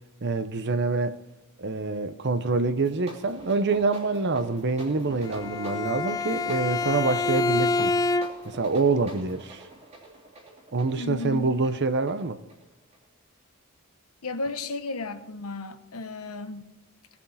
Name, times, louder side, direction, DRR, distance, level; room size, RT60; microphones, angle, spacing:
voice 1, 0.2-1.1 1.6-7.9 8.4-9.6 10.7-12.4, right 3 dB, 55° right, 0.8 m, -26 dB
sound 1, 2.7-13.1, right 1 dB, 30° right, 2.8 m, -46 dB
Bowed string instrument, 5.2-8.6, left 3 dB, 15° left, 0.4 m, -27 dB
voice 2, 11.0-11.5 14.2-16.7, left 2 dB, 85° left, 1.1 m, -34 dB
18.0 x 7.3 x 4.1 m
head